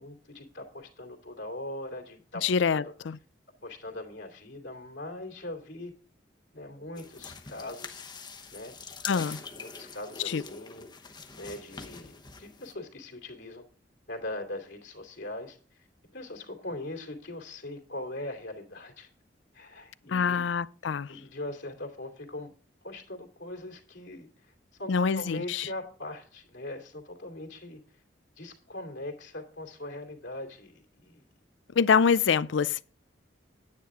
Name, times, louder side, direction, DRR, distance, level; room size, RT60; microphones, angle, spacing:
voice 1, 0.0-2.9 3.6-5.9 6.5-8.0 8.5-8.8 9.1-13.6 14.1-15.8 16.1-19.1 19.5-20.5 21.1-22.5 22.8-27.8 28.4-31.2, left 1 dB, 70° left, 2.7 m, -41 dB
voice 2, 2.4-3.2 9.0-9.4 10.2-10.4 20.1-21.1 24.9-25.7 31.7-32.8, left 6 dB, 90° left, 0.5 m, -25 dB
sound 1, 7.0-12.7, left 5 dB, 25° left, 1.0 m, -44 dB
9.7 x 9.4 x 3.7 m
head